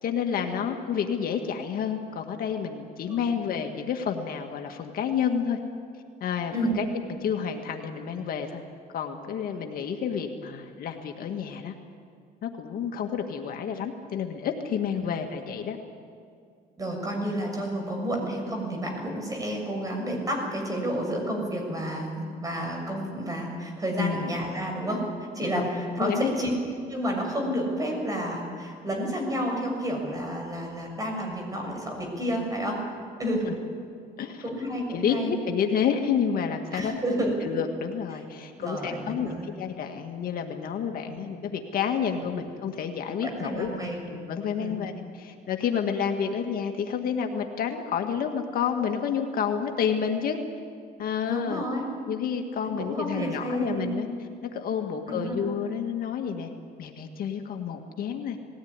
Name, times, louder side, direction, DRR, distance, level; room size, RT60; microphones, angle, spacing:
voice 1, 0.0-5.6 6.2-8.6 8.9-11.7 12.4-15.8 24.0-24.2 25.5-25.7 26.0-26.3 33.5-33.6 34.2-34.4 34.9-36.9 37.4-43.7 44.1-50.4 51.0-51.6 52.1-54.1 54.5-56.5 56.8-58.4, left 7 dB, 60° left, 4 dB, 1.9 m, -29 dB
voice 2, 16.8-25.0 25.3-26.5 26.9-32.8 33.2-33.5 34.4-35.3 36.7-37.3 38.6-39.5 41.1-41.2 42.2-42.4 43.2-44.0 44.6-44.7 51.3-51.9 52.6-54.0 55.1-55.4, equal, 20° right, 1 dB, 6.8 m, -30 dB
20.0 x 17.5 x 9.7 m, 2.3 s
cardioid pair, 110°, 17 cm